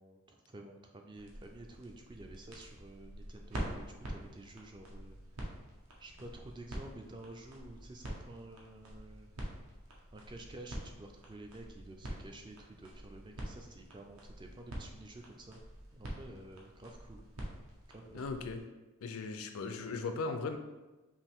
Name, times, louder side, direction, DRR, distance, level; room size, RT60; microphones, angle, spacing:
voice 1, 0.0-5.2 6.0-9.3 10.1-15.6 15.9-17.2 17.9-18.5, right 2 dB, 20° right, 3 dB, 0.3 m, -51 dB
sound 1, 1.1-18.6, right 1 dB, 75° right, 0.9 m, -46 dB
voice 2, 18.1-18.6 19.0-20.6, left 4 dB, 75° left, 7 dB, 0.4 m, -37 dB
5.5 x 2.6 x 3.5 m, 1.1 s
head